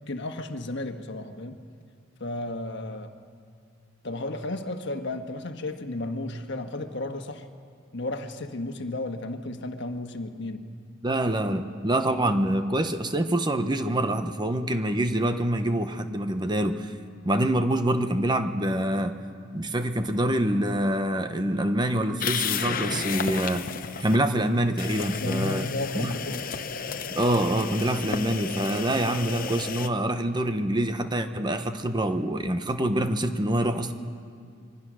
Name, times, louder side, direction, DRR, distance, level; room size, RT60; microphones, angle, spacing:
voice 1, 0.1-1.6 2.2-3.1 4.0-7.5 7.9-10.7 25.2-26.4, left 2 dB, 60° left, 6 dB, 1.4 m, -33 dB
voice 2, 11.0-16.9 17.2-19.2 19.5-23.7 24.0-25.7 25.9-26.1 27.2-33.9, right 1 dB, 20° right, 8 dB, 0.9 m, -25 dB
sound 1, 22.2-24.2 24.8-29.9, left 6 dB, 45° left, 0.8 m, -32 dB
25.5 x 23.5 x 6.3 m, 2.3 s
head